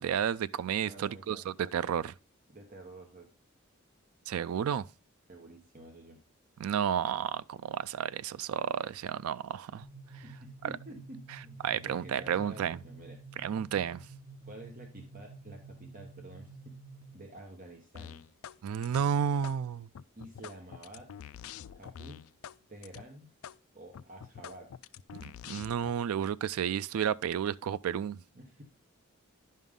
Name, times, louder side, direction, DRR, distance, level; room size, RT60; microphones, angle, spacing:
voice 1, 0.0-2.1 4.3-4.9 6.6-9.8 10.1-10.2 11.6-12.8 13.4-14.1 18.6-19.9 25.2-28.2, right 8 dB, 85° right, 0.3 m, -32 dB
voice 2, 0.8-1.5 2.5-3.3 5.3-6.2 10.2-13.2 14.5-16.8 17.1-18.2 20.2-21.1 21.8-22.2 22.7-23.3 23.7-24.7 28.3-28.6, right 1 dB, 40° right, 1.2 m, -49 dB
sound 1, 9.8-17.4, right 3 dB, 70° right, 0.8 m, -50 dB
sound 2, 18.0-18.6 18.8-19.6 20.0-22.6 22.8-23.0 23.4-23.6 23.9-25.9, left 9 dB, 75° left, 0.3 m, -46 dB
11.0 x 5.5 x 3.7 m
head